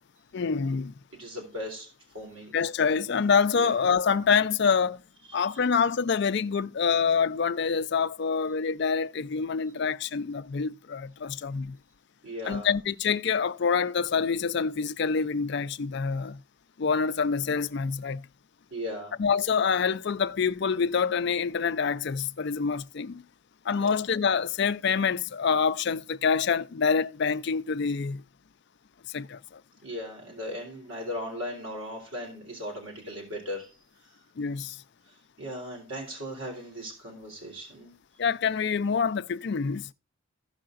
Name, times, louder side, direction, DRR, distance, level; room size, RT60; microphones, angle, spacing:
voice 1, 0.3-0.9 2.5-5.0 5.3-11.8 12.4-16.4 16.8-18.3 19.2-23.2 23.6-28.2 29.1-29.6 34.4-34.8 38.2-39.9, left 5 dB, 55° left, 0.4 m, -26 dB
voice 2, 1.1-1.9 2.1-2.6 3.6-3.8 5.3-5.5 12.2-12.7 18.7-19.2 23.8-23.9 29.8-33.7 35.4-37.9, left 1 dB, 75° right, 3.7 m, -37 dB
15.5 x 5.7 x 2.5 m
head